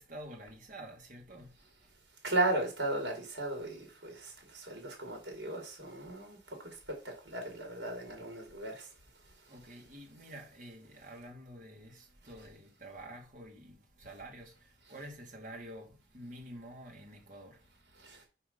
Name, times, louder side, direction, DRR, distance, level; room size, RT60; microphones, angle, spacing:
voice 1, 0.0-1.9 9.5-18.2, right 1 dB, 45° right, 2.3 m, -49 dB
voice 2, 2.2-6.4 7.2-8.9 18.0-18.2, right 1 dB, 70° right, 3.0 m, -35 dB
5.8 x 5.5 x 5.5 m
head